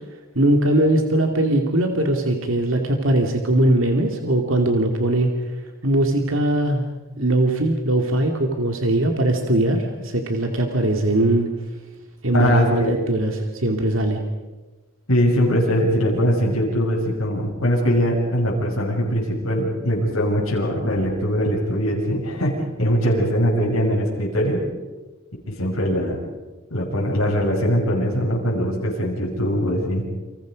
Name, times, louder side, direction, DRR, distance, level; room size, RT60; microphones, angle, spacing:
voice 1, 0.3-5.3 5.8-6.9 7.2-11.5 12.2-14.2, right 1 dB, 65° right, 3 dB, 2.5 m, -20 dB
voice 2, 12.3-12.9 15.1-24.6 25.5-26.2 26.7-30.0, equal, 70° left, -3 dB, 6.4 m, -21 dB
30.0 x 26.0 x 5.2 m, 1.2 s
head